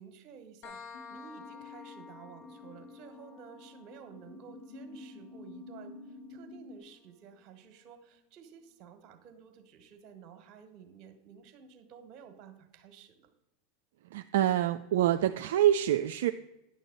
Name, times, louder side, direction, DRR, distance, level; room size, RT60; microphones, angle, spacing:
voice 1, 0.0-13.3, right 7 dB, 45° right, 8 dB, 1.5 m, -53 dB
sound 1, 0.6-8.0, left 5 dB, 55° left, 0.9 m, -53 dB
sound 2, 0.9-6.8, left 3 dB, 80° left, 1.4 m, -49 dB
voice 2, 14.1-16.3, right 12 dB, 70° right, 8 dB, 0.3 m, -26 dB
9.8 x 6.3 x 3.9 m, 0.92 s
hypercardioid pair, 100°, 0 cm